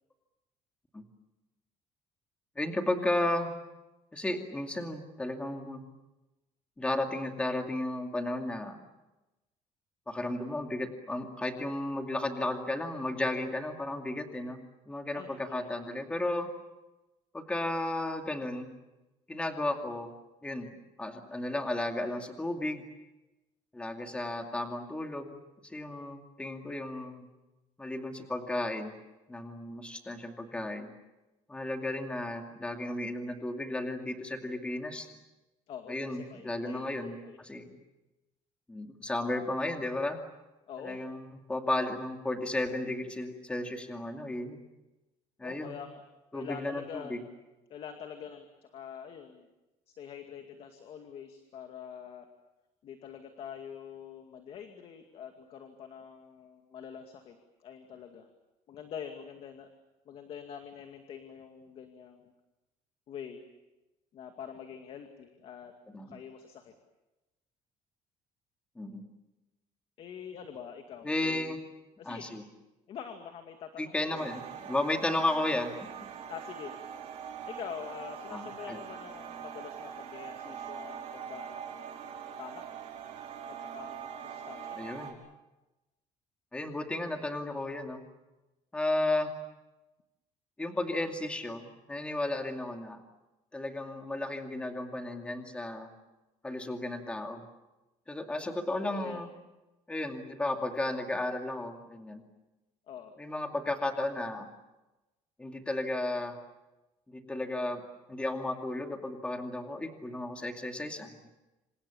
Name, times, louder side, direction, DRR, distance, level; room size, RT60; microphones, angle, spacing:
voice 1, 2.6-3.5 4.1-5.8 6.8-8.8 10.1-14.6 14.9-16.5 17.3-18.7 19.3-20.1 20.4-22.8 23.7-25.4 25.6-27.2 27.8-28.9 29.3-30.9 31.5-35.1 35.9-37.8 38.7-40.2 40.8-44.6 45.4-45.8 46.3-47.2 65.9-66.2 68.8-69.1 71.0-71.6 72.0-72.4 73.8-75.9 78.3-78.8 84.8-85.1 86.5-88.0 88.7-89.3 90.6-93.0 93.5-95.9 96.4-97.4 98.1-99.3 99.9-102.2 103.2-104.5 105.4-106.4 107.1-107.8 108.1-111.3, left 2 dB, 10° left, 4 dB, 2.4 m, -34 dB
voice 2, 15.1-15.7 35.7-37.4 40.7-41.0 45.4-46.0 46.3-47.2 47.7-49.5 49.9-52.3 52.8-58.3 58.7-59.7 60.1-62.3 63.1-63.5 64.1-65.7 66.0-66.7 70.0-71.6 72.0-72.3 72.9-74.3 76.3-76.7 77.4-81.9 82.4-82.6 83.5-84.8 98.3-98.6 98.9-99.2 102.9-103.1, left 8 dB, 50° left, 5 dB, 2.3 m, -45 dB
sound 1, 74.1-85.1, right 8 dB, 55° right, 5.2 m, -43 dB
27.5 x 27.0 x 7.2 m, 1.0 s
cardioid pair, 175°, 13 cm